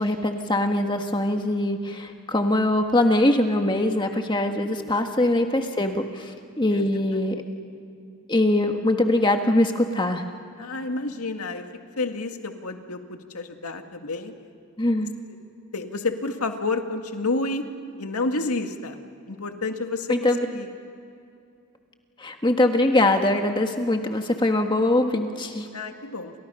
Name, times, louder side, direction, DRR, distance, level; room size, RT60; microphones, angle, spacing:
voice 1, 0.0-7.4 8.3-10.2 14.8-15.1 20.1-20.5 22.2-25.7, left 1 dB, 20° left, 4 dB, 1.5 m, -22 dB
voice 2, 10.6-11.6 12.0-14.3 15.7-17.6 18.0-19.0 19.3-20.7 25.7-26.3, left 3 dB, 85° left, 5 dB, 2.1 m, -30 dB
29.5 x 27.5 x 5.7 m, 2.5 s
head